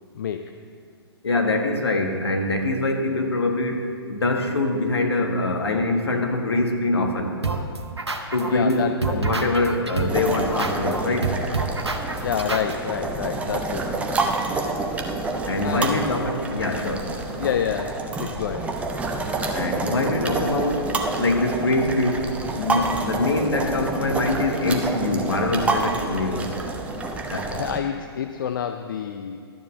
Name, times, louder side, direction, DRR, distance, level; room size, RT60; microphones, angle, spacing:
voice 1, 0.1-0.4 8.5-9.3 12.2-13.9 15.6-16.2 17.4-18.7 27.5-29.4, left 8 dB, 50° left, 8 dB, 0.5 m, -28 dB
voice 2, 1.2-7.3 8.3-11.3 15.4-17.4 19.5-22.3 22.5-26.5 27.3-27.5, left 2 dB, 70° left, 3 dB, 1.6 m, -24 dB
sound 1, 7.4-8.7 9.0-12.7, right 4 dB, 80° right, 1.1 m, -27 dB
sound 2, 10.1-27.8, right 3 dB, 10° right, 0.7 m, -28 dB
12.0 x 7.2 x 6.9 m, 2.2 s
figure-of-eight pair, 120°, 14 cm